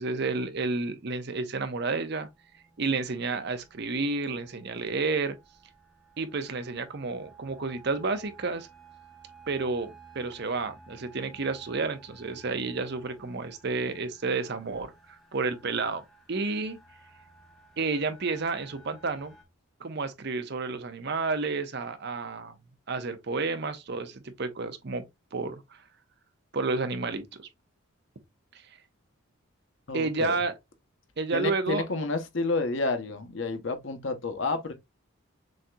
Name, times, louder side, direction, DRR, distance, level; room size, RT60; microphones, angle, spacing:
voice 1, 0.0-2.3 2.8-5.4 6.2-8.7 9.5-16.0 16.3-16.8 17.8-19.3 19.8-22.6 22.9-25.0 25.3-25.8 26.5-27.5 28.5-28.6 29.9-30.5 31.2-31.8, right 3 dB, 50° right, 0.6 m, -31 dB
sound 1, 2.3-19.4, right 4 dB, ahead, 0.8 m, -55 dB
voice 2, 29.9-30.3 31.3-34.7, left 3 dB, 60° left, 0.8 m, -30 dB
6.3 x 2.8 x 2.2 m
head